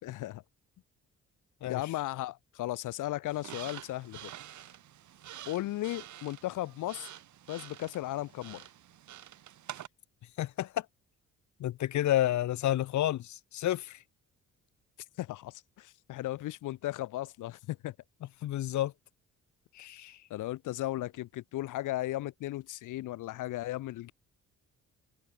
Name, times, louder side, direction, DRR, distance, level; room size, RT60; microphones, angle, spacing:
voice 1, 0.0-0.4 1.7-4.3 5.5-7.1 7.5-8.6 15.2-17.9 20.3-24.1, left 16 dB, 90° left, 4.5 m, -36 dB
sound 1, 3.3-9.9, right 12 dB, 70° right, 4.2 m, -48 dB
voice 2, 10.4-10.8 11.6-14.0 18.4-18.9 19.8-20.2, left 13 dB, 70° left, 1.0 m, -30 dB
cardioid pair, 90°, 30 cm